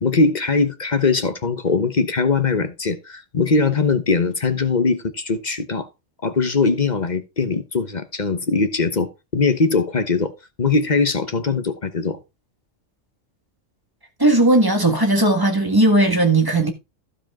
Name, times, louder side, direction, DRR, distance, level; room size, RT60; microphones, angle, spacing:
voice 1, 0.0-5.9 6.2-10.3 10.6-12.2, left 4 dB, 40° left, 1.1 m, -21 dB
voice 2, 14.2-16.7, right 2 dB, 15° right, 1.6 m, -17 dB
15.0 x 5.1 x 3.6 m
omnidirectional pair, 1.3 m